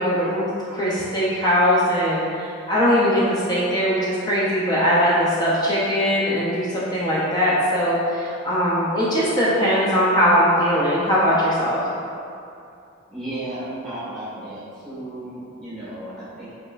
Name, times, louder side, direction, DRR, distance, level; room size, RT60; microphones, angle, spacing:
voice 1, 0.0-11.8, equal, 20° left, -8 dB, 0.5 m, -20 dB
voice 2, 13.1-16.5, right 1 dB, 5° left, -11 dB, 1.3 m, -34 dB
4.1 x 3.1 x 2.4 m, 2.5 s
head